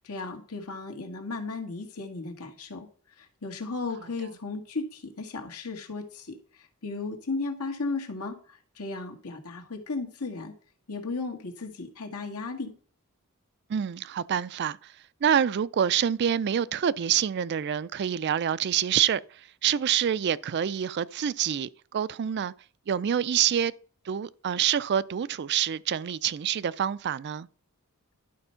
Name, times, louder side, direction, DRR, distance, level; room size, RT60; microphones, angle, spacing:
voice 1, 0.0-2.9 3.2-10.6 10.9-12.7, left 3 dB, 85° left, 1.7 m, -35 dB
voice 2, 13.7-14.8 15.2-19.2 19.6-22.5 22.9-23.7 24.1-27.5, right 9 dB, 50° right, 0.4 m, -26 dB
11.5 x 4.5 x 5.6 m
head